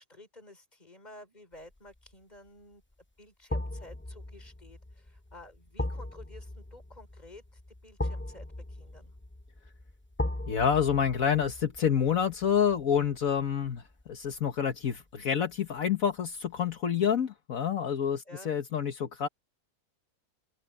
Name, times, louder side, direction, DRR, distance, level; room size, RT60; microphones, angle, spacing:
voice 1, 0.0-2.8 3.2-9.1 18.2-18.5, left 1 dB, 30° left, 4.8 m, -52 dB
sound 1, 1.7-2.1 3.5-14.5 14.8-15.0, left 1 dB, 15° left, 0.5 m, -39 dB
voice 2, 10.5-19.3, left 8 dB, 70° left, 1.7 m, -28 dB
open air
omnidirectional pair, 1.5 m